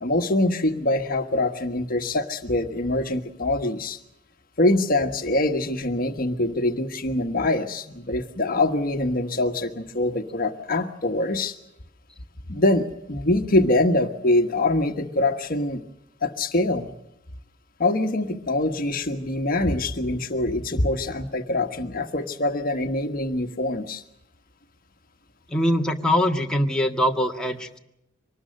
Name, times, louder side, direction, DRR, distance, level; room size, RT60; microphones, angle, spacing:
voice 1, 0.0-4.0 4.6-11.5 12.5-15.8 16.2-16.9 17.8-24.0, left 2 dB, 50° left, 6 dB, 1.3 m, -24 dB
voice 2, 25.5-27.8, left 1 dB, 5° left, 1 dB, 1.7 m, -23 dB
24.5 x 20.0 x 6.5 m, 0.85 s
head